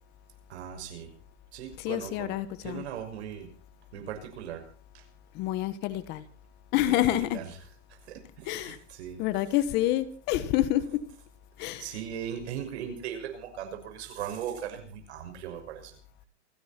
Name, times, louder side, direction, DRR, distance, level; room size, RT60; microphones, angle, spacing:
voice 1, 0.5-1.1 1.5-2.3 2.6-3.5 3.9-4.6 4.9-5.0 6.8-7.4 7.9-9.2 11.8-16.0, right 9 dB, 65° right, 6 dB, 6.1 m, -38 dB
voice 2, 1.8-2.8 5.3-6.2 6.7-7.4 8.5-8.8 9.2-11.1 11.6-11.8, left 14 dB, 30° left, 15 dB, 1.3 m, -28 dB
28.5 x 10.5 x 4.3 m, 0.41 s
supercardioid pair, 165°, 35 cm